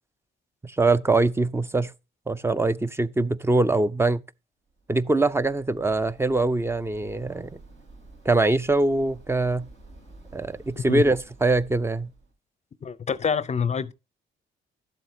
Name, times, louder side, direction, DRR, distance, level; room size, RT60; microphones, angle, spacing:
voice 1, 0.6-1.9 2.3-4.2 4.9-7.5 8.3-9.7 10.3-12.1, right 2 dB, 10° right, 0.5 m, -23 dB
Waves surf, 4.7-12.3, right 2 dB, 75° right, 5.3 m, -50 dB
voice 2, 12.8-13.9, left 6 dB, 35° left, 0.5 m, -26 dB
11.5 x 7.8 x 2.8 m
cardioid pair, 90°, 20 cm